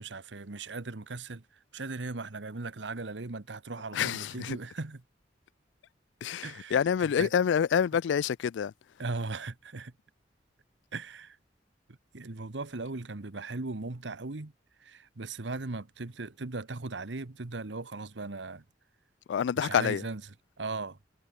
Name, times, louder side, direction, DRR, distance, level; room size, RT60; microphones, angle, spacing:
voice 1, 0.0-1.4 1.7-5.0 6.4-7.3 9.0-9.9 10.9-11.4 12.1-14.5 14.8-18.6 19.6-20.2 20.6-21.0, right 3 dB, 90° right, 1.2 m, -38 dB
voice 2, 3.9-4.6 6.2-8.7 19.3-20.0, left 8 dB, 90° left, 0.3 m, -27 dB
head